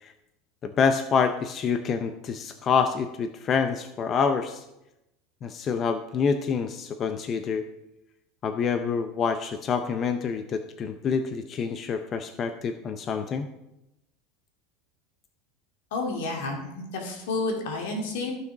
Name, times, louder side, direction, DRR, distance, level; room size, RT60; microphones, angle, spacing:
voice 1, 0.6-4.6 5.4-7.6 8.4-13.5, left 6 dB, 35° left, 8 dB, 0.6 m, -27 dB
voice 2, 15.9-18.3, left 3 dB, 85° left, 1 dB, 2.4 m, -30 dB
14.0 x 6.1 x 3.9 m, 0.91 s
supercardioid pair, 135°, 0 cm